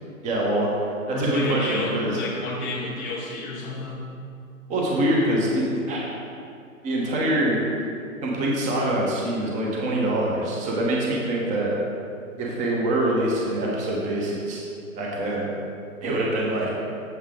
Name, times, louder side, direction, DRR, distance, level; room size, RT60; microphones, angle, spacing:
voice 1, 0.2-2.2 4.7-6.1 6.8-7.6 8.2-11.7 12.4-14.6 15.0-15.5 16.0-16.8, right 1 dB, 15° right, -3 dB, 1.1 m, -24 dB
voice 2, 1.1-4.0, left 2 dB, 15° left, -7 dB, 0.4 m, -30 dB
8.2 x 7.2 x 3.7 m, 2.5 s
hypercardioid pair, 135°, 42 cm